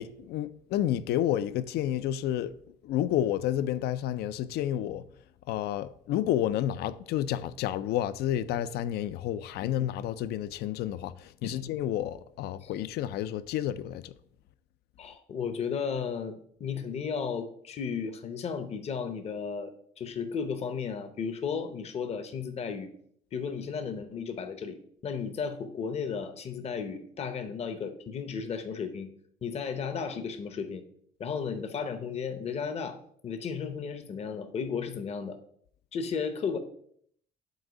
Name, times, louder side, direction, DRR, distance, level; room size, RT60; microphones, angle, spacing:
voice 1, 0.0-2.6 2.8-5.0 5.5-14.1, left 11 dB, 75° left, 0.4 m, -30 dB
voice 2, 15.0-19.7 20.0-22.9 23.3-24.8 25.0-29.1 29.4-30.8 31.2-35.4 35.9-36.6, left 6 dB, 40° left, 0.7 m, -34 dB
7.8 x 2.6 x 4.9 m
cardioid pair, 110°, 17 cm